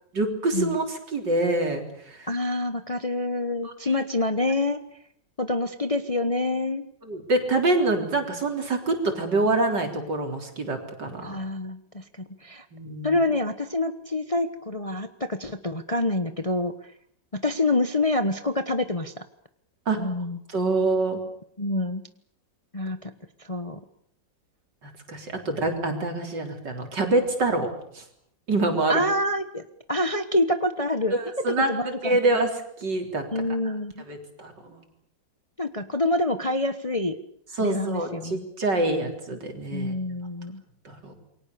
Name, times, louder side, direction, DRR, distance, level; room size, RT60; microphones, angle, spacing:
voice 1, 0.1-2.3 3.6-3.7 7.0-11.3 12.7-13.2 19.9-20.0 20.5-21.2 24.8-27.7 27.9-28.0 28.5-29.0 31.1-31.7 32.0-32.5 32.8-33.2 34.1-34.8 37.6-39.9 40.8-41.2, right 2 dB, 70° right, 4 dB, 4.5 m, -26 dB
voice 2, 2.3-4.8 5.4-6.9 11.2-12.0 12.4-12.7 13.0-16.7 17.3-19.2 20.0-20.4 21.6-22.0 22.7-23.1 23.4-23.8 28.9-29.6 29.9-31.2 31.6-32.4 33.3-34.1 35.6-37.1 37.6-38.4 39.7-40.6, left 2 dB, 25° left, 9 dB, 1.0 m, -26 dB
28.0 x 23.5 x 6.9 m, 0.68 s
omnidirectional pair, 2.0 m